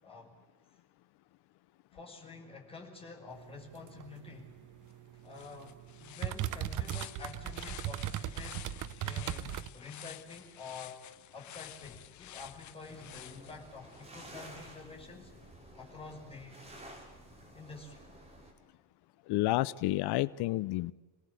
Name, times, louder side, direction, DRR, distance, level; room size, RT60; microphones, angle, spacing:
voice 1, 0.0-0.3 0.7-0.8 1.9-4.5 5.1-8.7 9.0-11.0 11.3-15.3 15.8-16.6 17.5-18.1, left 4 dB, 15° left, 5.6 m, -48 dB
sound 1, 3.3-9.7, right 12 dB, 50° right, 0.8 m, -39 dB
sound 2, 4.9-5.0 5.3-14.1, left 12 dB, 45° left, 0.9 m, -50 dB
sound 3, 12.9-18.5, right 1 dB, 15° right, 5.4 m, -52 dB
voice 2, 19.3-20.9, left 17 dB, 80° left, 0.7 m, -30 dB
28.0 x 18.5 x 8.3 m
cardioid pair, 180°, 39 cm